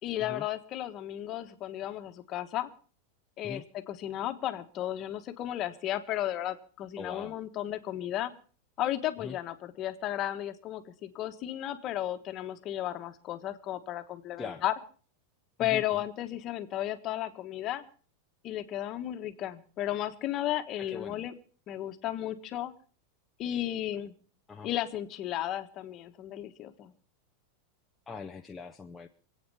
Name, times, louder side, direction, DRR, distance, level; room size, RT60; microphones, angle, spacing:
voice 1, 0.0-2.7 3.4-8.3 8.8-14.7 15.6-17.8 18.4-21.3 21.7-22.7 23.4-24.1 24.6-26.9, left 13 dB, 30° left, 8 dB, 1.4 m, -34 dB
voice 2, 7.0-7.3 9.2-9.4 14.4-14.6 15.6-15.8 20.8-21.2 24.5-24.7 28.1-29.1, left 5 dB, 10° left, 2 dB, 0.7 m, -41 dB
26.0 x 8.7 x 5.6 m, 0.41 s
supercardioid pair, 160°, 0 cm